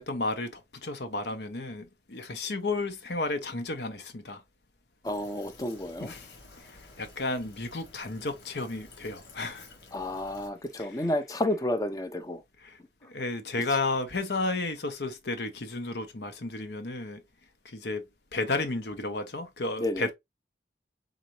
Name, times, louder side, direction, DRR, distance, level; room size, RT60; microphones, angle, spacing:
voice 1, 0.0-4.4 6.0-6.3 6.6-9.7 13.0-17.2 17.6-20.1, left 3 dB, 70° left, 1.0 m, -33 dB
Fill (with liquid), 5.0-10.5, left 3 dB, 85° left, 1.6 m, -52 dB
voice 2, 5.0-6.1 9.9-12.4 13.5-13.8 19.8-20.1, left 1 dB, 20° left, 0.6 m, -31 dB
4.1 x 3.9 x 3.2 m
head